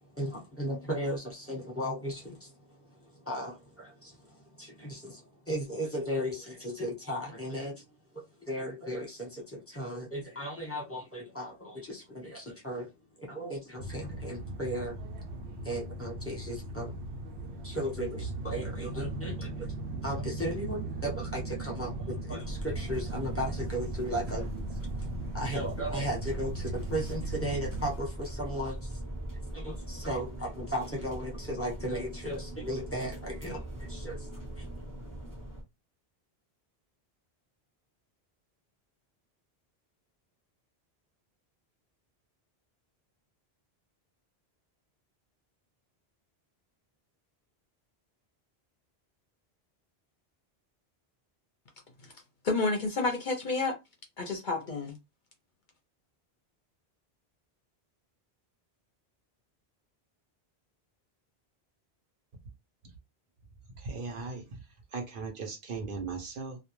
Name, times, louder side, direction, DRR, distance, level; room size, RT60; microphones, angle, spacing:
voice 1, 0.1-2.5 3.0-7.8 8.4-12.9 13.2-14.9 15.6-16.9 17.6-24.5 25.0-29.0 29.3-35.5, equal, 15° left, 0.9 m, -36 dB
sound 1, 13.8-28.0, right 2 dB, 90° right, 0.9 m, -38 dB
sound 2, 22.4-35.6, right 1 dB, 20° right, 0.7 m, -40 dB
voice 2, 52.4-53.7 54.2-55.0, left 3 dB, 55° left, 0.7 m, -29 dB
voice 3, 63.8-64.4 64.9-66.6, right 4 dB, 60° right, 0.8 m, -37 dB
2.3 x 2.2 x 3.0 m
omnidirectional pair, 1.1 m